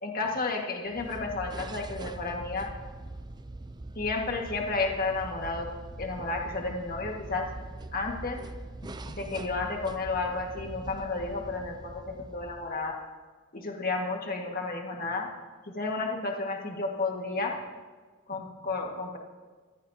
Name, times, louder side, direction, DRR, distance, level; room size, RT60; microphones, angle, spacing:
voice 1, 0.0-2.7 4.0-7.5 7.9-8.4 9.0-13.0 13.5-15.3 15.7-17.6 18.3-19.2, left 3 dB, 45° left, 1 dB, 1.8 m, -32 dB
sound 1, 0.9-13.1, right 2 dB, 20° right, 0.5 m, -43 dB
19.5 x 15.5 x 2.8 m, 1.4 s
head